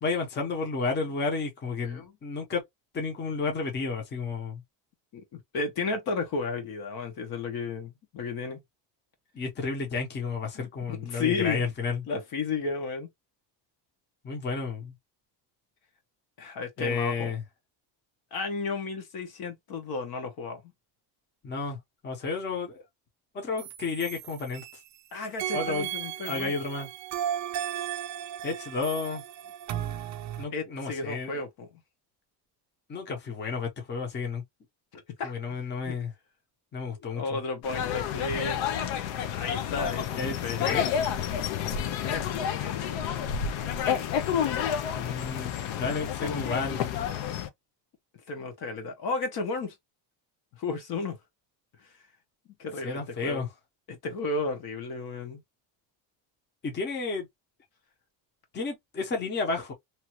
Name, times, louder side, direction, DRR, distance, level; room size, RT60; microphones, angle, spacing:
voice 1, 0.0-2.6 2.9-4.6 9.3-12.0 14.2-14.9 16.8-17.4 21.4-21.8 22.0-22.8 23.3-24.6 25.5-25.9 26.2-26.9 28.4-29.2 30.4-31.4 32.9-34.4 35.2-36.1 36.7-37.4 40.2-40.9 44.9-47.0 52.8-53.5 56.6-57.3 58.5-59.7, left 4 dB, 25° left, 0.9 m, -32 dB
voice 2, 5.1-8.6 10.5-11.6 12.1-13.1 16.4-17.3 18.3-20.6 25.1-26.5 30.5-31.7 34.9-35.3 35.8-36.0 36.9-38.6 39.3-40.9 41.8-43.0 48.3-49.8 50.6-51.2 52.6-53.5 53.9-55.4, left 4 dB, 50° left, 1.1 m, -33 dB
sound 1, 23.6-25.0 25.4-30.4, right 11 dB, 40° right, 0.5 m, -35 dB
sound 2, 37.6-47.5, left 8 dB, 80° left, 0.7 m, -30 dB
2.9 x 2.4 x 2.9 m
cardioid pair, 155°, 46 cm